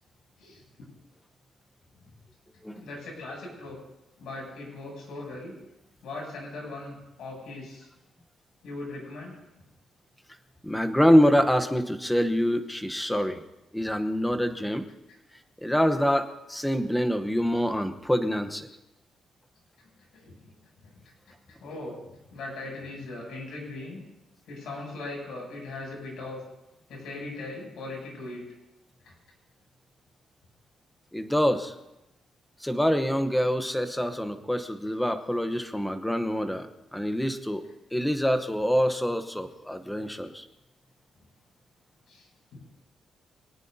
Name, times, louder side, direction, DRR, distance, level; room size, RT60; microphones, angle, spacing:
voice 1, 0.4-0.9 2.7-3.8 4.2-5.5 6.0-7.9 8.6-9.4 15.1-15.2 20.1-20.5 20.8-20.9 21.5-24.0 24.5-26.4 26.9-28.4 29.0-29.1 42.1-42.6, left 2 dB, 75° left, -1 dB, 7.9 m, -39 dB
voice 2, 10.6-13.4 13.7-14.8 15.6-18.7 31.1-31.7 32.6-37.6 37.9-40.4, equal, 5° left, 7 dB, 1.0 m, -25 dB
25.5 x 18.5 x 2.8 m, 0.94 s
cardioid pair, 150°, 0 cm